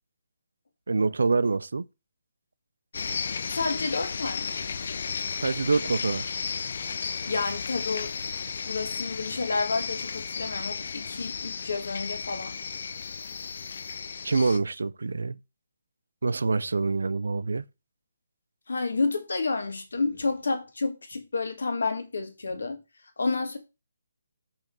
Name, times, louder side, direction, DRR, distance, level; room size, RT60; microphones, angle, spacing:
voice 1, 0.9-1.8 5.4-6.3 14.2-15.4 16.2-17.6, right 3 dB, 90° right, 0.4 m, -26 dB
sound 1, 2.9-14.6, left 5 dB, 40° left, 0.4 m, -34 dB
voice 2, 3.5-4.5 4.8-4.9 7.3-8.3 8.6-12.6 18.7-22.8 23.2-23.6, left 3 dB, 90° left, 1.7 m, -30 dB
5.3 x 5.2 x 3.8 m
hypercardioid pair, 180°, 0 cm